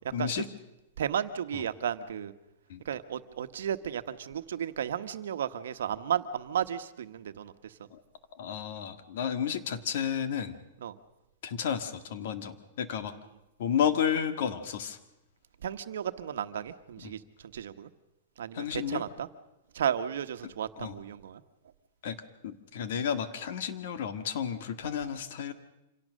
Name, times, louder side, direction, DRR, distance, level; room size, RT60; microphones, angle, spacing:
voice 1, 0.1-0.5 1.5-1.7 2.7-2.8 7.9-8.0 8.3-10.6 11.4-13.1 13.6-15.0 17.0-17.1 18.5-19.0 20.4-21.0 22.0-22.2 22.4-25.5, left 8 dB, 60° left, 10 dB, 1.8 m, -32 dB
voice 2, 1.0-2.3 2.8-7.7 10.8-11.0 15.6-17.2 17.5-17.9 18.4-19.3 19.7-21.4, right 9 dB, 85° right, 10 dB, 1.2 m, -33 dB
26.0 x 17.5 x 6.4 m, 0.95 s
supercardioid pair, 160°, 0 cm